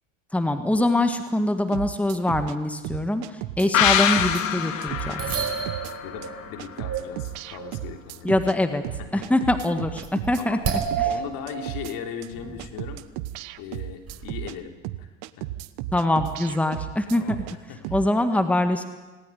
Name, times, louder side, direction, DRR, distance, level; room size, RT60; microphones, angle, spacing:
voice 1, 0.3-5.4 8.2-8.8 9.1-11.1 15.9-17.4 17.9-18.8, left 1 dB, 5° left, 7 dB, 1.8 m, -24 dB
sound 1, 1.7-2.6 2.8-4.4 4.8-5.2 5.5-5.9 6.2-6.3 6.6-8.6 8.8-10.4 10.8-11.2 11.5-11.9 12.2-12.3 12.6-14.6 14.8-17.6 17.8-18.1, right 15 dB, 65° right, 1.1 m, -34 dB
sound 2, 3.7-7.2 7.5-7.6, left 9 dB, 85° left, 1.7 m, -25 dB
sound 3, 3.9-4.0 4.2-4.3 4.9-7.1 7.5-7.7 9.0-9.2 9.7-10.3 10.6-12.1 12.4-12.5 13.1-13.2 14.1-14.4, right 8 dB, 40° right, 5.0 m, -30 dB
voice 2, 6.0-8.3 9.0-9.2 10.4-10.6 11.0-13.0 13.6-15.1 15.4-15.5 17.1-17.4 17.7-17.9, left 8 dB, 60° left, 4 dB, 3.4 m, -38 dB
19.5 x 18.5 x 9.6 m, 1.2 s
hypercardioid pair, 75°, 38 cm